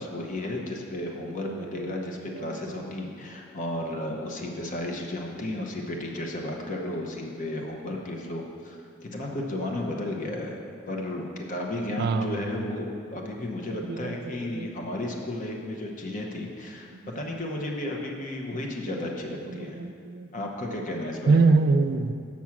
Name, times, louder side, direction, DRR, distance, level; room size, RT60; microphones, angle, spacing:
voice 1, 0.0-19.8 20.3-21.4, left 1 dB, 40° left, 0 dB, 0.9 m, -33 dB
voice 2, 1.2-2.9 12.0-12.7 13.7-14.7 18.5-18.6 18.9-19.1 19.5-20.3 21.3-22.1, right 3 dB, 50° right, 9 dB, 0.4 m, -26 dB
7.3 x 6.2 x 5.9 m, 2.3 s
head